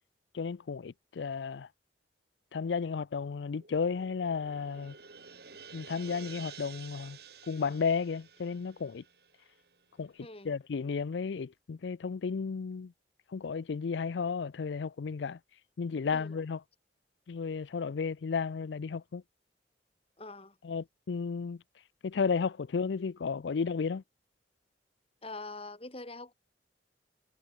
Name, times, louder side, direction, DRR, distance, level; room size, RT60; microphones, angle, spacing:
voice 1, 0.3-1.7 2.5-4.9 5.7-7.2 7.5-9.0 10.0-10.1 10.4-12.9 13.3-15.4 15.8-16.6 17.3-19.2 20.6-21.6 22.0-24.0, left 5 dB, 80° left, 0.4 m, -33 dB
sound 1, 3.5-10.0, right 6 dB, 60° right, 4.3 m, -51 dB
voice 2, 10.2-10.5 16.1-16.4 20.2-20.6 25.2-26.3, left 2 dB, 35° left, 3.3 m, -44 dB
head